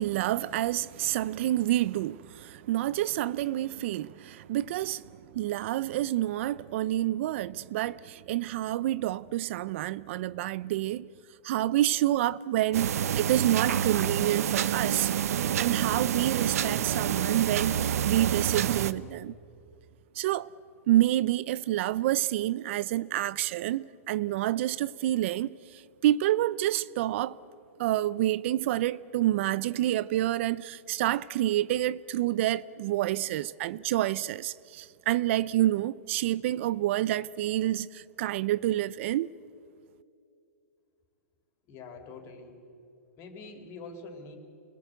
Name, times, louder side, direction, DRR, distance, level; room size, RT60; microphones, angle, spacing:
voice 1, 0.0-11.1 11.4-15.1 15.6-19.3 20.1-20.5 20.9-27.4 27.8-39.3, right 14 dB, 55° right, 0.6 m, -28 dB
sound 1, 12.7-18.9, right 9 dB, 80° right, 1.0 m, -28 dB
voice 2, 41.7-42.5 43.2-44.4, left 3 dB, 35° left, 4.0 m, -44 dB
29.5 x 20.5 x 8.2 m
hypercardioid pair, 145°, 8 cm